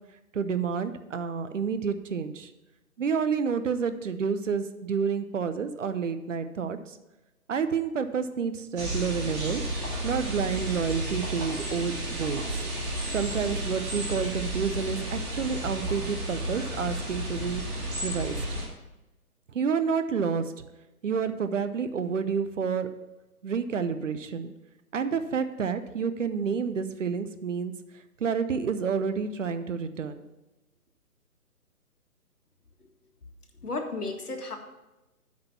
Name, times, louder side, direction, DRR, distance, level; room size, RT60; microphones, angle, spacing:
voice 1, 0.3-2.5 3.0-6.8 7.5-9.6 10.0-12.4 13.1-17.6 18.0-18.4 19.5-20.4 21.0-22.9 23.4-24.5 24.9-27.7 28.2-30.2, right 6 dB, 55° right, 10 dB, 0.8 m, -29 dB
sound 1, 8.7-18.6, right 1 dB, 25° right, 3.0 m, -32 dB
voice 2, 33.6-34.6, left 3 dB, 80° left, 3 dB, 1.9 m, -33 dB
8.3 x 5.2 x 7.0 m, 1.0 s
figure-of-eight pair, 145°, 45 cm